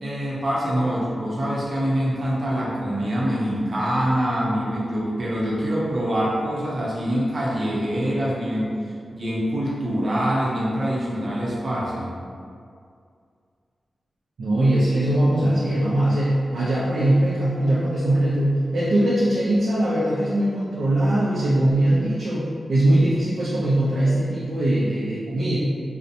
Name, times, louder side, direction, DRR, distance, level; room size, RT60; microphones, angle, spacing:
voice 1, 0.0-8.8 9.1-12.1, equal, 50° right, -6 dB, 0.6 m, -25 dB
voice 2, 14.4-25.6, right 1 dB, 90° right, -7 dB, 0.4 m, -21 dB
2.6 x 2.0 x 2.5 m, 2.3 s
wide cardioid pair, 105°, 0 cm